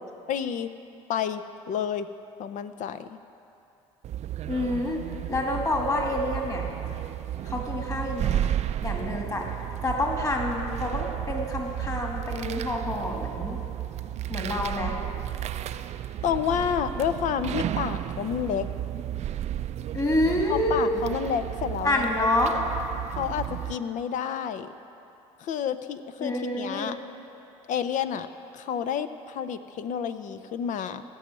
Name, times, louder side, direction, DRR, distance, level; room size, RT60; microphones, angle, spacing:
voice 1, 0.3-0.7 1.1-2.1 2.4-3.2 16.2-18.7 20.5-22.1 23.2-24.7 25.4-27.0 27.7-28.3 28.5-31.0, left 8 dB, 60° left, 11 dB, 0.7 m, -29 dB
sound 1, 4.0-23.7, right 11 dB, 50° right, 0.5 m, -33 dB
voice 2, 4.5-5.0 5.3-6.6 7.4-8.5 8.8-9.5 9.8-13.6 14.3-15.0 19.9-20.9 21.8-22.5 26.2-27.0, left 1 dB, 25° left, 0 dB, 2.3 m, -27 dB
16.5 x 5.6 x 8.3 m, 2.8 s
supercardioid pair, 80°, 15 cm